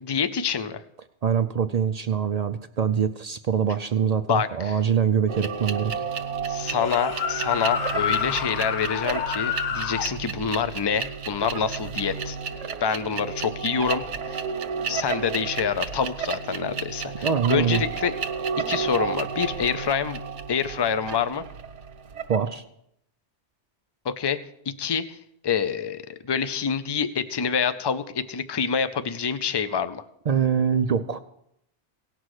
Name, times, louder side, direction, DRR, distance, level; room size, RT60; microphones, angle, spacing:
voice 1, 0.1-0.8 4.3-4.8 6.5-12.4 12.8-14.4 14.9-18.1 18.7-20.2 20.5-21.4 24.0-24.4 24.8-25.2 25.4-30.0, left 7 dB, 40° left, 12 dB, 0.4 m, -26 dB
voice 2, 1.2-6.0 17.2-17.8 22.3-22.6 30.3-31.2, right 7 dB, 60° right, 9 dB, 0.4 m, -24 dB
sound 1, 5.3-22.5, right 6 dB, 85° right, 1.1 m, -32 dB
sound 2, 6.7-10.1, left 7 dB, 55° left, 0.8 m, -28 dB
18.0 x 6.1 x 4.8 m, 0.75 s
omnidirectional pair, 1.2 m